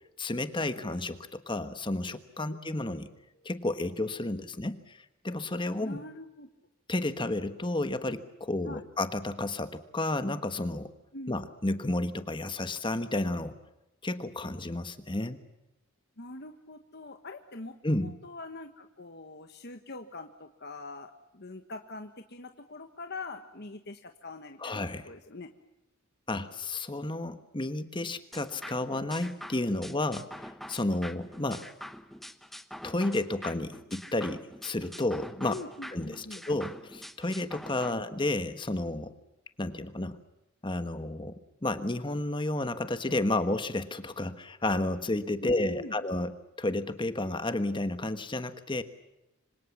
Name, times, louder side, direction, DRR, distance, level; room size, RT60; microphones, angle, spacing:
voice 1, 0.2-3.1 3.4-5.0 5.2-6.0 6.9-10.9 11.3-13.6 14.0-15.4 17.8-18.1 24.6-25.1 26.3-31.7 32.8-35.5 35.9-39.1 39.6-40.2 40.6-48.8, left 2 dB, 25° left, 10 dB, 1.3 m, -31 dB
voice 2, 5.8-6.5 8.6-8.8 11.1-11.4 16.2-25.5 35.5-36.4 37.9-38.1 45.4-46.0, left 2 dB, 50° left, 6 dB, 1.4 m, -43 dB
sound 1, 28.3-37.9, equal, ahead, 1.0 m, -45 dB
26.0 x 26.0 x 7.3 m, 0.93 s
head